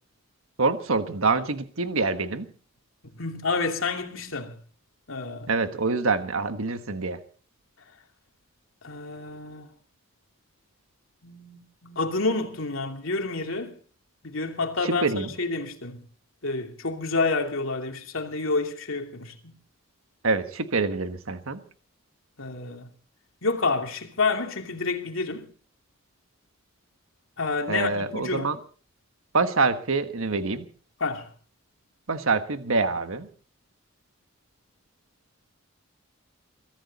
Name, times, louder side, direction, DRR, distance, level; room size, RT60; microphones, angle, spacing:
voice 1, 0.6-2.5 5.5-7.2 14.8-15.3 20.2-21.6 27.7-28.6 29.3-30.7 32.1-33.3, right 3 dB, 75° right, 1.4 m, -26 dB
voice 2, 3.2-4.5 5.1-5.5 8.8-9.7 11.2-13.7 14.2-16.0 16.4-19.5 22.4-22.9 23.4-25.5 27.4-28.5 31.0-31.2, left 3 dB, 70° left, 2.7 m, -29 dB
23.0 x 15.0 x 4.1 m
head